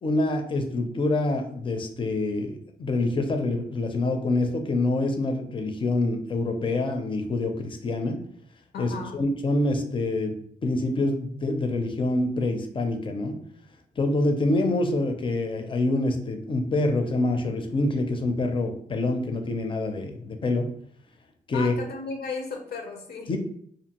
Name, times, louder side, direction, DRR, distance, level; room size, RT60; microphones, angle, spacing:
voice 1, 0.0-8.2 8.8-10.4 10.6-13.4 14.0-20.7 21.5-21.7 23.3-23.4, left 2 dB, 30° left, 5 dB, 0.4 m, -26 dB
voice 2, 8.7-9.1 21.5-23.3, left 4 dB, 80° left, 2 dB, 0.6 m, -34 dB
2.5 x 2.4 x 2.8 m, 0.64 s
cardioid pair, 90°, 16 cm